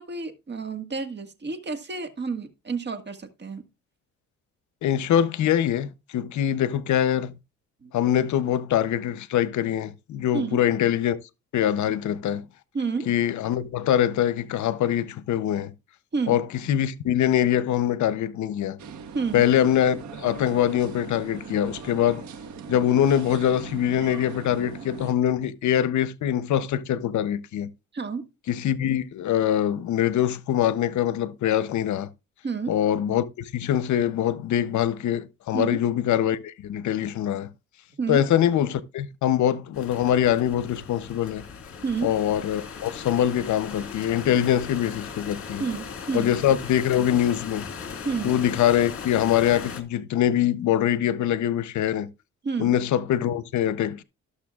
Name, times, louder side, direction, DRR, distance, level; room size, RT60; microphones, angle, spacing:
voice 1, 0.0-3.6 7.8-7.9 10.3-10.6 12.7-13.1 16.1-16.4 19.1-19.5 22.6-22.7 27.9-28.2 32.4-32.8 35.5-35.8 38.0-38.2 41.8-42.1 45.6-46.3 48.0-48.3 52.4-52.8, right 5 dB, 35° right, 1.7 m, -30 dB
voice 2, 4.8-7.3 7.9-11.2 11.5-12.4 13.1-15.7 16.3-18.8 19.3-22.3 22.7-27.7 28.5-32.1 32.7-37.5 38.1-41.4 42.0-45.6 46.1-47.6 48.2-52.1 52.6-54.0, left 10 dB, 70° left, 0.8 m, -23 dB
sound 1, 18.8-25.1, right 6 dB, 70° right, 1.4 m, -40 dB
sound 2, 39.7-49.8, left 6 dB, 45° left, 2.1 m, -38 dB
19.5 x 6.7 x 2.4 m
cardioid pair, 90°, 30 cm